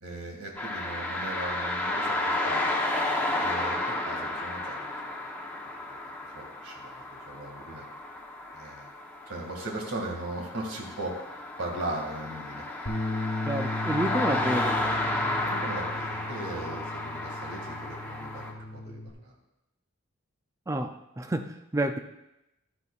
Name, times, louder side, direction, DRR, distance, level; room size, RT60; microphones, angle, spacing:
voice 1, 0.0-2.8 3.4-4.9 5.6-6.0 6.3-7.8 8.5-8.9 9.3-11.1 11.6-12.6 15.5-19.3, right 2 dB, 75° right, 0 dB, 2.3 m, -38 dB
sound 1, 0.6-18.5, left 2 dB, 10° left, 1.0 m, -32 dB
Bass guitar, 12.9-19.1, left 2 dB, 75° left, 1.4 m, -36 dB
voice 2, 13.5-14.8 20.7-22.0, right 1 dB, 15° right, 7 dB, 0.5 m, -29 dB
12.5 x 9.7 x 2.5 m, 0.91 s
head